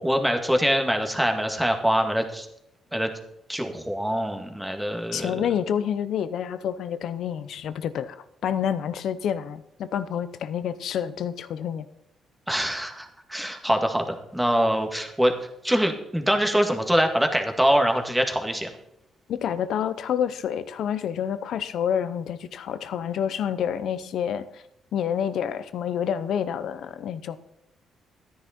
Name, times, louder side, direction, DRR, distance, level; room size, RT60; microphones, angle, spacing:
voice 1, 0.0-2.5 2.9-3.1 3.5-5.5 12.5-15.3 15.6-18.7, equal, 5° right, 4 dB, 2.0 m, -24 dB
voice 2, 5.1-8.2 8.4-11.9 19.3-24.6 24.9-27.4, left 9 dB, 70° left, 14 dB, 0.8 m, -28 dB
13.0 x 10.0 x 4.4 m, 0.81 s
cardioid pair, 90°, 0 cm